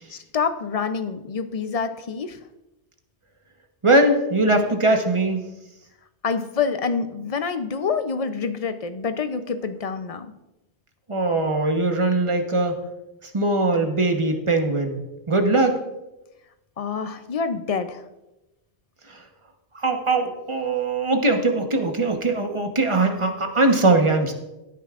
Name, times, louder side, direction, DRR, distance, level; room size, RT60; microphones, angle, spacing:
voice 1, 0.1-2.4 6.2-10.3 16.8-18.0, left 5 dB, 40° left, 10 dB, 0.6 m, -27 dB
voice 2, 3.8-5.4 11.1-12.8 13.3-15.0 15.3-15.8 19.1-19.2 19.8-24.3, right 2 dB, 30° right, 4 dB, 1.1 m, -21 dB
16.5 x 9.2 x 2.5 m, 0.97 s
omnidirectional pair, 1.1 m